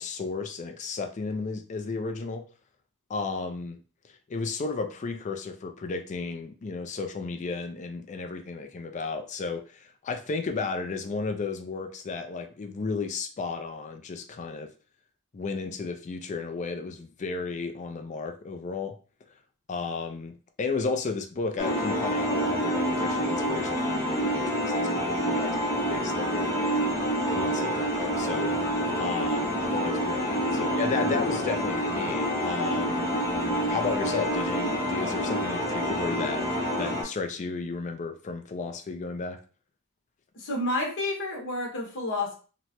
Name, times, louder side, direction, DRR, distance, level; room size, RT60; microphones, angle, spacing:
voice 1, 0.0-2.4 3.1-3.8 4.3-14.7 15.3-18.9 19.7-25.6 25.9-26.5 27.2-28.5 29.0-33.1 33.7-36.4 36.8-39.4, left 4 dB, 35° left, 5 dB, 0.4 m, -33 dB
sound 1, 21.6-37.0, equal, 15° left, 0.8 m, -27 dB
voice 2, 40.3-42.3, left 2 dB, 55° left, 0 dB, 0.8 m, -30 dB
2.9 x 2.1 x 2.8 m, 0.38 s
head